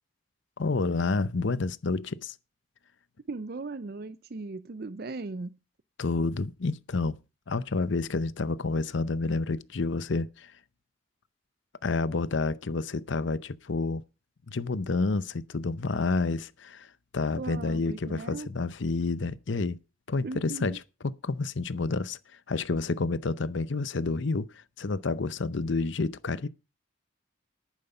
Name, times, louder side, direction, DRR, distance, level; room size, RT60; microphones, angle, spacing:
voice 1, 0.6-2.3 6.0-7.2 7.5-10.5 11.8-14.0 14.5-16.9 17.1-19.8 20.1-20.8 21.0-22.2 22.5-24.5 24.8-26.5, left 3 dB, 65° left, 0.7 m, -29 dB
voice 2, 3.3-5.6 17.4-18.5 20.2-20.8, right 3 dB, 50° right, 0.5 m, -37 dB
10.5 x 9.4 x 5.5 m
head